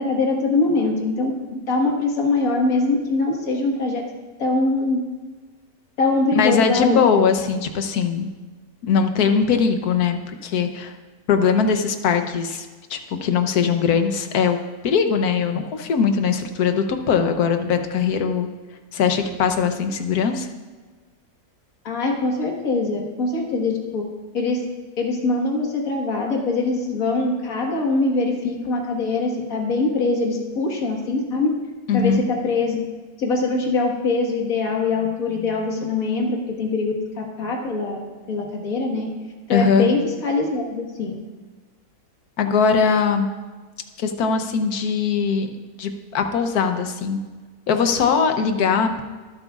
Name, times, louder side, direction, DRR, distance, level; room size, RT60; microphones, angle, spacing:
voice 1, 0.0-4.0 4.4-5.0 6.0-7.0 21.8-24.0 24.3-24.6 25.0-31.5 31.9-32.8 33.2-39.1 39.5-41.1, left 3 dB, 65° left, 0 dB, 2.0 m, -23 dB
voice 2, 6.3-8.3 8.8-10.9 11.3-14.6 14.8-18.5 18.9-20.5 31.9-32.2 39.5-39.9 42.4-43.3 44.0-45.5 45.8-47.2 47.7-49.0, left 6 dB, 85° left, 6 dB, 1.4 m, -20 dB
22.5 x 7.9 x 2.4 m, 1.4 s
omnidirectional pair, 1.6 m